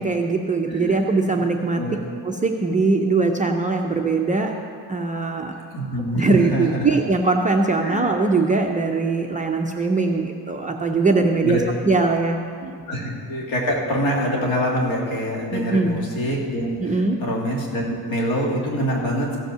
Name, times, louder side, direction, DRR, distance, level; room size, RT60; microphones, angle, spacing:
voice 1, 0.0-1.8 2.2-4.5 4.9-5.5 5.9-12.9 15.5-16.0 16.8-17.2, right 3 dB, 20° right, 1 dB, 0.4 m, -21 dB
voice 2, 0.7-1.1 1.7-2.0 5.7-6.9 7.8-8.1 11.4-11.6 12.9-19.4, equal, 70° left, -3 dB, 2.8 m, -25 dB
15.0 x 5.4 x 6.7 m, 2.2 s
cardioid pair, 165°, 47 cm